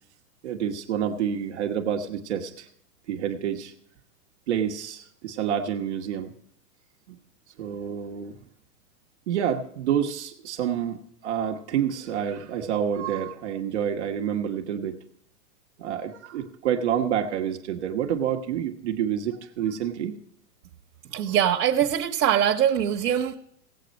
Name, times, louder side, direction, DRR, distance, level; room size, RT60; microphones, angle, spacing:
voice 1, 0.4-2.7 3.1-3.7 4.5-6.3 7.1-7.2 7.6-8.4 9.3-15.0 15.8-20.1, right 9 dB, 45° right, 3 dB, 1.1 m, -28 dB
voice 2, 21.1-23.4, right 10 dB, 85° right, 0 dB, 1.2 m, -22 dB
17.5 x 8.3 x 5.2 m, 0.70 s
supercardioid pair, 170°, 49 cm